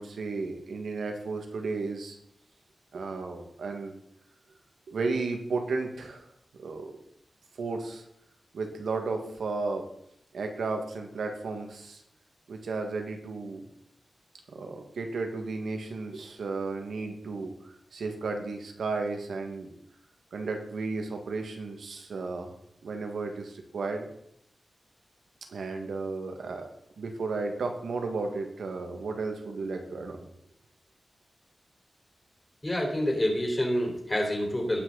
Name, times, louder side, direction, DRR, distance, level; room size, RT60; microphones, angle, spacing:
voice 1, 0.0-2.2 2.9-3.9 4.9-6.3 6.6-6.9 7.6-8.0 8.5-9.9 10.3-12.0 12.5-13.7 14.5-19.7 20.3-22.5 22.8-24.1 25.5-26.7 27.0-30.3, right 3 dB, 90° right, 4 dB, 1.9 m, -33 dB
voice 2, 32.6-34.8, left 1 dB, 20° left, 0 dB, 4.1 m, -27 dB
19.0 x 6.3 x 4.0 m, 0.75 s
wide cardioid pair, 80°, 0 cm